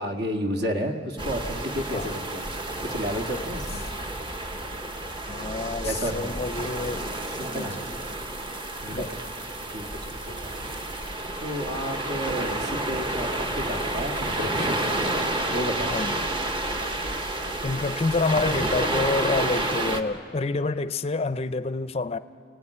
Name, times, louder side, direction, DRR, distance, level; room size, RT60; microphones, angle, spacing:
voice 1, 0.0-2.5 2.8-3.8 5.8-6.4 7.4-8.0 8.8-9.2 9.7-11.1 11.4-14.8 15.5-16.0, equal, 60° right, 2.0 m, -32 dB
sound 1, 1.2-20.0, right 1 dB, 25° right, 1.1 m, -30 dB
voice 2, 5.3-7.1 7.5-7.8 8.9-9.1 15.9-16.3 17.6-22.2, left 3 dB, 35° left, 0.5 m, -28 dB
29.5 x 18.0 x 9.8 m
head